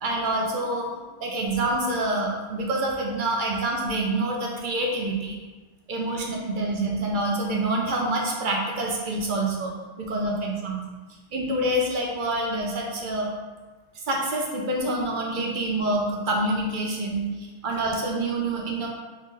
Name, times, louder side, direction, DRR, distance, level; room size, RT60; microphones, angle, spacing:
voice 1, 0.0-5.4 5.9-10.8 11.3-13.3 14.1-18.9, right 1 dB, 55° right, -1 dB, 0.7 m, -27 dB
3.7 x 2.5 x 3.2 m, 1.3 s
omnidirectional pair, 1.2 m